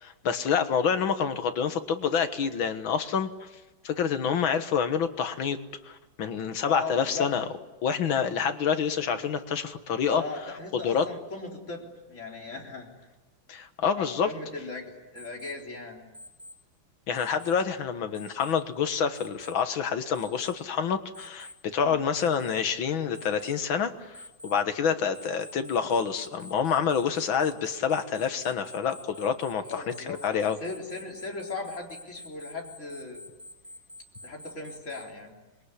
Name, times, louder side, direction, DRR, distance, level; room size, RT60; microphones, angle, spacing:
voice 1, 0.0-3.5 3.8-5.6 5.9-7.4 7.8-10.2 10.8-11.1 13.5-14.3 17.1-30.6, left 7 dB, 80° left, 9 dB, 2.2 m, -27 dB
voice 2, 6.6-7.3 10.1-12.9 14.0-16.0 21.8-22.0 29.6-33.2 34.2-35.4, left 3 dB, 35° left, 0 dB, 4.3 m, -38 dB
Alarm, 15.1-15.5 16.1-16.5 17.1-17.5 18.1-18.5 19.1-19.5 20.1-20.5 21.1-21.5 22.1-22.5 23.1-23.5 24.1-24.5 25.1-35.0, left 1 dB, 5° right, 5.3 m, -46 dB
26.0 x 22.0 x 9.9 m, 1.1 s
omnidirectional pair, 2.2 m